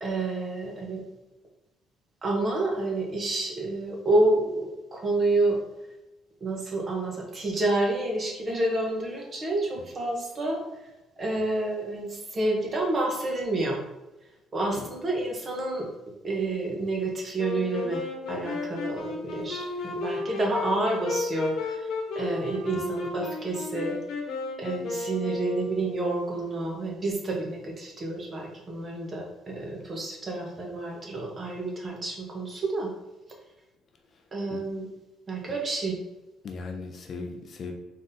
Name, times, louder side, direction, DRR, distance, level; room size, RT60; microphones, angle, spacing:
voice 1, 0.0-1.0 2.2-5.6 6.4-10.6 11.2-13.8 14.5-15.9 16.2-18.0 18.3-21.9 22.2-24.0 24.6-32.9 34.3-34.9 35.3-36.0, right 2 dB, 25° right, 0 dB, 0.7 m, -29 dB
Wind instrument woodwind instrument, 17.4-26.1, left 3 dB, 75° left, 1.0 m, -33 dB
voice 2, 19.6-19.9 22.7-22.8 34.5-34.6 35.5-35.6 36.4-37.7, left 4 dB, 35° left, 3 dB, 0.4 m, -38 dB
4.0 x 3.6 x 2.6 m, 1.0 s
cardioid pair, 175°, 0 cm